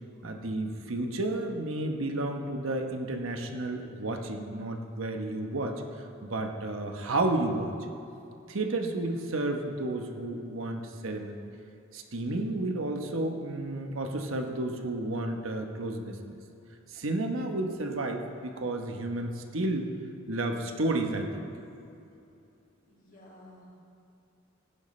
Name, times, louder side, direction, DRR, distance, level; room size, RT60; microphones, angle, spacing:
voice 1, 0.2-5.8 6.2-7.7 8.5-11.3 11.9-16.2 16.9-19.9 20.3-21.4, right 2 dB, 80° right, 4 dB, 1.0 m, -31 dB
voice 2, 22.9-23.7, left 1 dB, 40° left, -4 dB, 2.4 m, -53 dB
15.5 x 11.0 x 3.3 m, 2.7 s
head